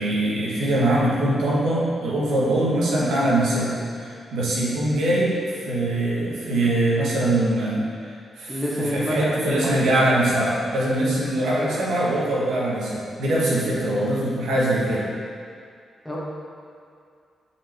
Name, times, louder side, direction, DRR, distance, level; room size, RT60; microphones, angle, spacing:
voice 1, 0.0-15.1, right 1 dB, 90° right, -6 dB, 1.5 m, -23 dB
voice 2, 8.5-9.9 10.4-10.5 11.6-11.8 16.1-16.2, equal, 5° left, -5 dB, 1.7 m, -28 dB
5.9 x 5.1 x 4.5 m, 2.3 s
cardioid pair, 65°, 0 cm